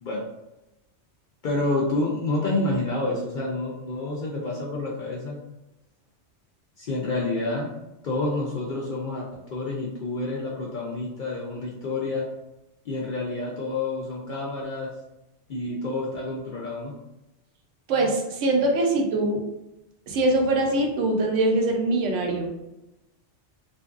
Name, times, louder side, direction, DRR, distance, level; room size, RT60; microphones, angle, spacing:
voice 1, 1.4-5.4 6.8-7.7 8.0-12.3 12.9-14.9 15.5-16.9, left 2 dB, 60° left, -3 dB, 0.5 m, -28 dB
voice 2, 17.9-19.4 20.1-22.5, right 2 dB, 85° right, 2 dB, 0.9 m, -23 dB
2.6 x 2.5 x 2.3 m, 0.94 s
omnidirectional pair, 1.2 m